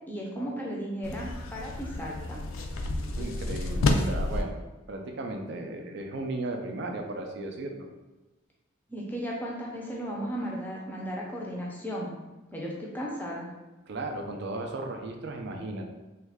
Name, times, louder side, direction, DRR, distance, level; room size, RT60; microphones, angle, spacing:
voice 1, 0.1-2.4 8.9-12.1 12.5-13.5, equal, 10° left, -3 dB, 0.5 m, -35 dB
sound 1, 1.0-4.4, left 2 dB, 85° left, 0.4 m, -29 dB
voice 2, 3.2-4.6 4.9-7.9 13.9-15.8, right 2 dB, 55° right, 3 dB, 0.4 m, -35 dB
3.1 x 2.4 x 3.4 m, 1.1 s
head